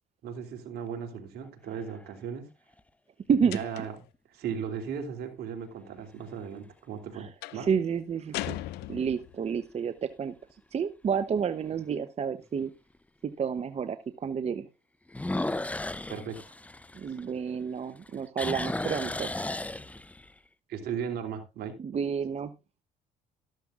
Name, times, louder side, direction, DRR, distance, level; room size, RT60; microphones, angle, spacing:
voice 1, 0.2-2.5 3.4-3.9 4.3-7.3 7.5-7.7 16.1-16.4 20.7-21.8, right 7 dB, 70° right, 2.9 m, -36 dB
sound 1, 1.4-2.1 2.8-2.9 8.1-8.6 9.0-9.1 9.7-9.8 10.1-10.2 11.7-11.8 15.1-17.6 18.0-20.3, left 2 dB, 10° left, 0.6 m, -34 dB
sound 2, 3.5-4.1 7.4-7.7 8.3-9.4, left 16 dB, 80° left, 0.6 m, -38 dB
voice 2, 7.1-8.6 8.9-10.3 10.7-12.7 13.2-14.7 16.9-19.3 21.8-22.5, right 6 dB, 40° right, 0.9 m, -30 dB
13.5 x 13.0 x 2.5 m
supercardioid pair, 80°, 17 cm